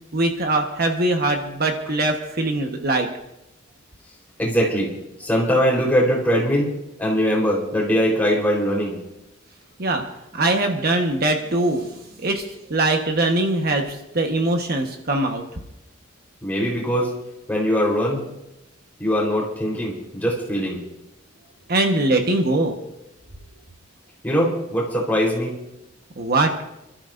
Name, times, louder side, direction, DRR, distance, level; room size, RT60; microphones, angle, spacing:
voice 1, 0.1-3.1 9.8-10.0 10.3-12.4 12.7-15.4 21.7-22.8 26.2-26.5, right 2 dB, 50° right, 3 dB, 1.3 m, -22 dB
voice 2, 4.4-4.9 5.2-6.7 7.0-9.0 16.4-17.1 17.5-18.2 19.0-20.8 24.2-25.6, equal, 10° left, -3 dB, 4.0 m, -21 dB
28.5 x 13.0 x 2.6 m, 0.89 s
head